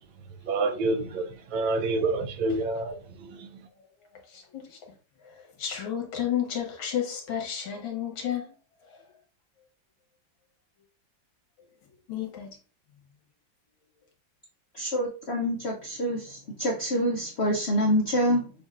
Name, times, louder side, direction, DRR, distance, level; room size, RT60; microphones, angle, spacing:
voice 1, 0.4-3.5, right 3 dB, 85° right, 1.5 m, -28 dB
voice 2, 4.3-4.9 5.2-8.5 8.9-9.0 12.1-12.6, left 9 dB, 90° left, 2.0 m, -32 dB
voice 3, 14.7-18.5, equal, 75° left, 0.6 m, -26 dB
6.9 x 2.6 x 2.4 m
omnidirectional pair, 2.1 m